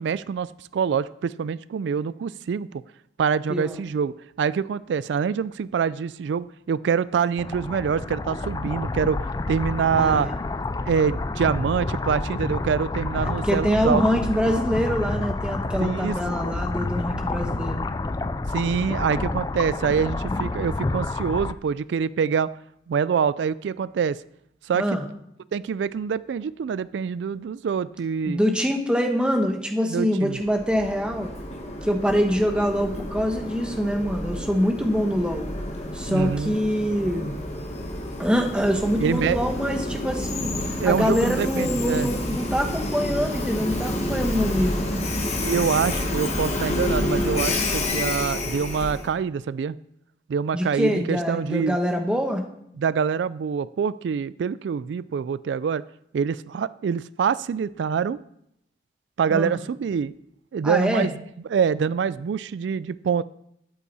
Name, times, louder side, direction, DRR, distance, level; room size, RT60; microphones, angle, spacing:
voice 1, 0.0-2.8 3.2-10.3 10.9-14.0 15.8-16.2 18.5-22.5 22.9-24.2 24.6-24.9 25.5-28.4 29.9-30.4 36.1-36.6 39.0-39.5 40.7-42.1 45.4-49.8 50.3-51.8 52.8-55.8 56.1-58.2 59.2-60.1 60.5-63.2, right 6 dB, 85° right, 18 dB, 0.3 m, -25 dB
sound 1, 7.4-21.5, left 2 dB, 20° left, 0.3 m, -29 dB
voice 2, 9.9-10.3 13.4-17.9 24.7-25.0 28.3-31.3 31.8-35.5 35.9-37.3 38.2-40.5 40.8-45.1 50.5-52.4 59.3-59.6 60.6-61.1, equal, 5° right, 3 dB, 1.1 m, -24 dB
Train, 30.3-49.1, left 1 dB, 35° left, 1.7 m, -29 dB
12.5 x 8.4 x 4.2 m, 0.75 s
head